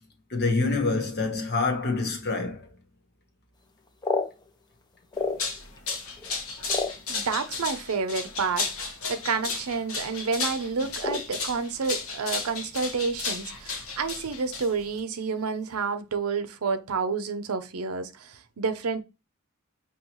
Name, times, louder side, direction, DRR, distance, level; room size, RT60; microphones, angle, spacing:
voice 1, 0.3-2.8, left 3 dB, 50° left, 1.2 m, -26 dB
sound 1, 3.7-5.8 6.2-7.6 8.4-8.5 8.8-9.1 9.4-9.8 10.1-10.3 11.0-12.0 12.2-13.1 13.4-13.5 13.9-14.2 14.7-15.1, left 3 dB, 20° left, 0.5 m, -32 dB
sound 2, 5.2-15.0, left 4 dB, 75° left, 1.3 m, -33 dB
voice 2, 7.1-19.0, right 5 dB, 75° right, 0.6 m, -29 dB
5.5 x 3.0 x 3.0 m
head